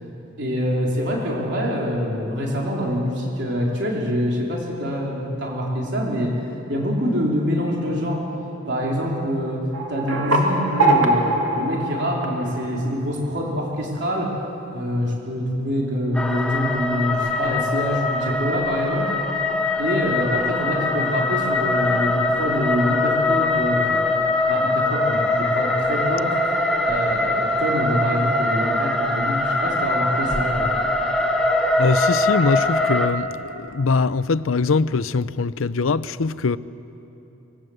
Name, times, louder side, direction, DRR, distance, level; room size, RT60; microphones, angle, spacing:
voice 1, 0.4-6.4 6.7-8.3 8.7-14.4 14.7-19.1 19.8-24.0 24.5-26.4 26.8-30.9, equal, 55° right, 4.1 m, -25 dB
sound 1, 9.7-13.0, right 2 dB, 85° right, 2.8 m, -22 dB
sound 2, 16.1-33.1, left 2 dB, 5° left, 1.5 m, -22 dB
voice 2, 31.8-36.6, left 4 dB, 85° left, 0.6 m, -22 dB
25.5 x 21.5 x 7.9 m
head